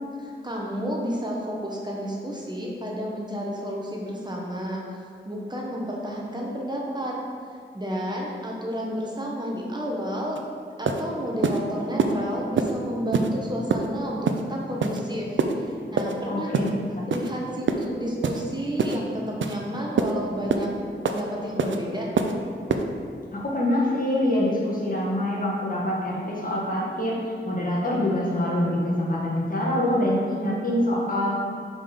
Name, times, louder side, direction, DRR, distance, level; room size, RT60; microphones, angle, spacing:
voice 1, 0.2-7.2 7.7-10.4 10.8-16.6 17.1-20.7 21.0-22.1, equal, 20° right, -3 dB, 1.1 m, -31 dB
sound 1, 10.4-10.5 10.9-11.0 11.4-11.6 12.0-12.1 12.6-12.7 13.1-13.3 13.7-13.9 14.3-14.4 14.8-15.0 15.4-15.5 16.0-16.1 16.5-16.7 17.1-17.3 17.7-17.9 18.2-18.4 18.8-19.0 19.4-19.6 20.0-20.1 20.5-20.7 21.1-21.2 21.6-21.8 22.2-22.3 22.7-22.8, right 5 dB, 75° right, 0.5 m, -24 dB
voice 2, 16.2-16.7 23.3-27.2 27.4-31.3, left 1 dB, 45° left, -4 dB, 1.6 m, -25 dB
5.5 x 5.0 x 5.6 m, 2.3 s
wide cardioid pair, 90°, 20 cm